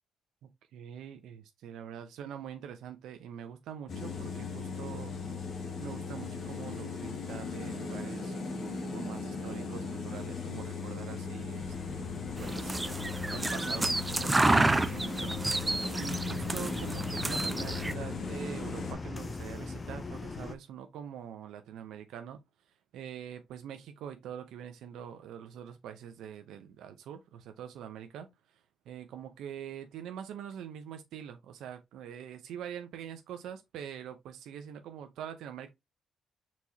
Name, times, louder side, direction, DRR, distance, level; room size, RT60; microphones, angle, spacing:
voice 1, 0.7-5.1 5.8-12.8 13.3-15.3 16.0-22.4 22.9-28.3 28.9-35.7, right 9 dB, 85° right, 0.7 m, -44 dB
sound 1, 3.9-18.9, left 4 dB, 60° left, 1.7 m, -38 dB
sound 2, 11.6-20.6, left 3 dB, 30° left, 0.7 m, -41 dB
sound 3, 12.4-17.9, right 2 dB, 15° right, 0.5 m, -30 dB
4.6 x 4.2 x 2.8 m
cardioid pair, 90°, 0 cm